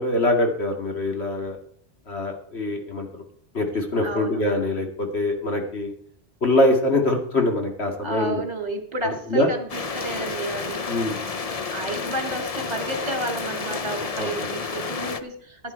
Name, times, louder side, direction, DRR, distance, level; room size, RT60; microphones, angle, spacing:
voice 1, 0.0-1.6 2.1-3.1 3.5-5.9 6.4-8.4 9.3-9.5 10.9-11.2 14.2-14.5, left 1 dB, 65° left, 2 dB, 2.6 m, -23 dB
voice 2, 4.0-4.4 8.0-10.9 11.7-15.7, right 1 dB, 35° right, 4 dB, 2.5 m, -31 dB
sound 1, 9.7-15.2, left 4 dB, 35° left, 0.8 m, -30 dB
15.0 x 9.8 x 4.6 m, 0.62 s
omnidirectional pair, 1.2 m